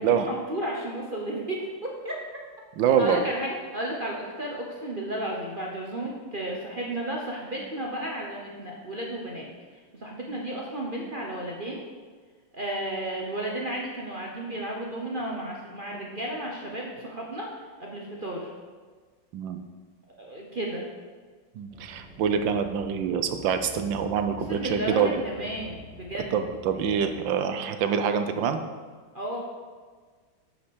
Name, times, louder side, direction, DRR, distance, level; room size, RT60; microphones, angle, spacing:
voice 1, 0.0-2.2 3.0-9.5 9.7-11.8 12.5-17.5 17.8-18.5 20.2-20.8 24.5-26.3 29.1-29.4, right 1 dB, 35° right, -2 dB, 0.8 m, -33 dB
voice 2, 2.8-3.2 19.3-19.6 21.5-25.2 26.3-28.6, right 7 dB, 70° right, 8 dB, 1.4 m, -25 dB
sound 1, 21.7-27.3, left 1 dB, 5° right, 0.8 m, -48 dB
8.6 x 5.8 x 6.3 m, 1.5 s
omnidirectional pair, 2.2 m